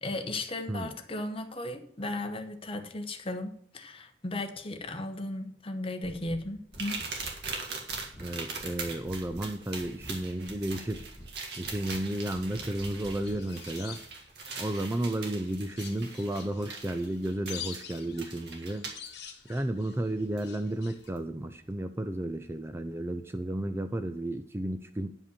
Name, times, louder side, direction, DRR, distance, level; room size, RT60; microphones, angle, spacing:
voice 1, 0.0-7.0, left 2 dB, 30° left, 7 dB, 1.0 m, -36 dB
sound 1, 6.0-6.4 6.7-7.6 7.9-8.3 8.6-9.5 9.8-10.2 10.5-11.3 11.6-12.0 12.3-13.4, equal, 5° left, 1.5 m, -47 dB
sound 2, 6.7-19.1 20.4-20.5 21.0-21.2, right 4 dB, 65° right, 2.0 m, -41 dB
voice 2, 8.2-11.1 11.6-14.0 14.6-18.9 19.5-25.2, right 1 dB, 15° right, 9 dB, 0.4 m, -33 dB
sound 3, 13.2-15.1 15.4-21.1, left 8 dB, 65° left, 1.3 m, -47 dB
9.6 x 5.2 x 7.0 m, 0.68 s
head